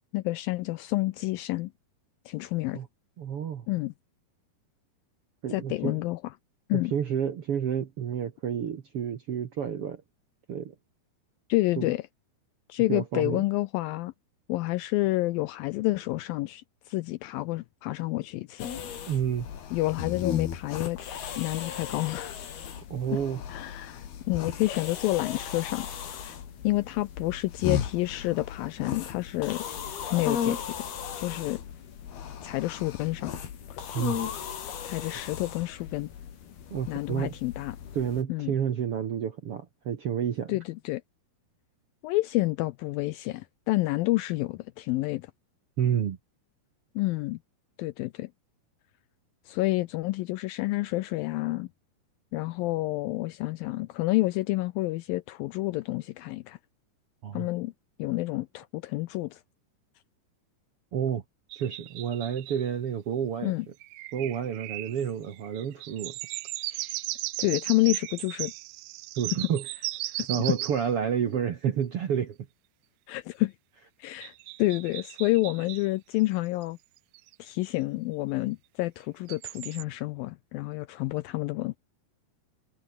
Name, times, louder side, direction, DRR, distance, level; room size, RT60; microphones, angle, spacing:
voice 1, 0.1-1.7 2.3-2.8 3.7-3.9 5.5-6.2 6.7-6.9 11.5-12.0 12.7-14.1 14.5-18.7 19.7-21.0 21.4-22.4 23.5-25.9 26.2-26.4 26.6-29.6 30.1-30.9 31.2-31.6 32.4-33.3 33.7-33.8 34.8-36.1 36.9-37.8 38.3-38.6 40.5-41.0 42.0-45.3 47.0-47.4 47.8-48.3 49.5-51.7 52.3-56.6 57.3-57.7 58.0-59.4 63.4-63.7 67.4-68.5 70.2-70.4 73.1-73.5 74.0-74.3 74.6-76.8 77.4-81.8, left 19 dB, 85° left, 2.1 m, -29 dB
voice 2, 3.2-3.6 5.4-6.0 6.7-10.0 10.5-10.7 11.8-11.9 12.9-13.4 19.1-19.5 22.9-23.4 33.9-34.2 36.7-37.3 37.9-40.6 45.8-46.2 57.2-57.5 60.9-61.2 61.5-63.5 64.1-66.1 66.7-66.9 69.2-69.6 70.3-72.4, right 8 dB, 65° right, 1.5 m, -30 dB
sound 1, 18.6-38.2, left 8 dB, 70° left, 4.9 m, -36 dB
sound 2, 61.5-62.7 63.8-70.9 74.2-75.9 76.6-76.7 77.0-77.4 79.3-79.8, right 19 dB, 80° right, 2.5 m, -37 dB
omnidirectional pair, 4.7 m